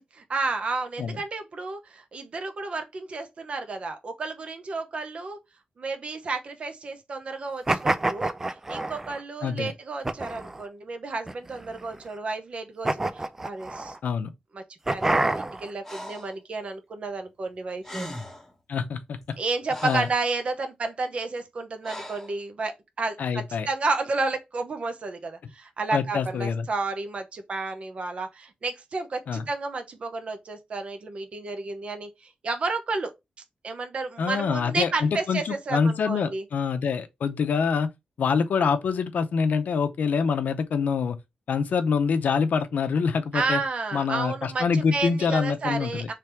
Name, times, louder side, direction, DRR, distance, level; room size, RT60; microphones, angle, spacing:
voice 1, 0.3-5.4 5.8-8.3 8.7-13.9 14.5-18.1 19.4-33.1 33.6-36.4 43.3-46.1, right 3 dB, 45° right, 0.8 m, -31 dB
sound 1, 7.7-9.2 10.0-10.6 11.3-12.0 12.8-14.0 14.9-15.7, right 2 dB, 15° right, 0.3 m, -27 dB
voice 2, 9.4-9.7 14.0-14.3 18.7-19.4 19.8-20.1 23.2-23.7 25.9-26.7 29.3-29.5 34.2-37.9 38.2-41.2 41.5-43.6 43.9-46.1, left 5 dB, 85° left, 0.6 m, -25 dB
Breathing, 15.8-16.4 17.5-17.6 17.8-18.5 19.2-20.2 21.8-22.3, left 1 dB, 5° left, 1.0 m, -39 dB
3.5 x 3.3 x 4.5 m
wide cardioid pair, 175°, 3 cm